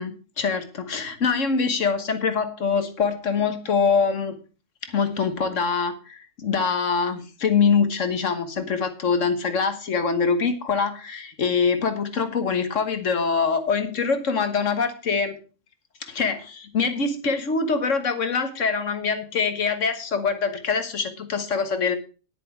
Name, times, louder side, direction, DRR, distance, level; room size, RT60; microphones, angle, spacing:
voice 1, 0.0-4.3 4.9-15.4 16.0-22.0, left 5 dB, 65° left, 9 dB, 1.7 m, -24 dB
10.0 x 9.9 x 4.6 m, 0.35 s
omnidirectional pair, 1.4 m